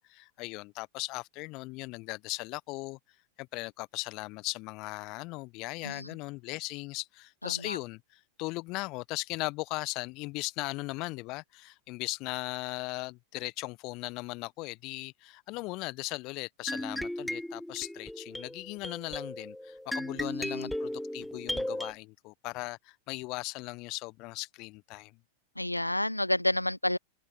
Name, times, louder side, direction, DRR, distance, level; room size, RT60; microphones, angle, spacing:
voice 1, 0.0-3.0 3.4-25.1, left 24 dB, 40° left, 1.1 m, -38 dB
voice 2, 7.4-7.8 20.2-20.7 25.6-27.0, left 1 dB, 85° left, 0.9 m, -30 dB
sound 1, 16.7-21.9, left 1 dB, ahead, 0.9 m, -36 dB
figure-of-eight pair, 90°, 0 cm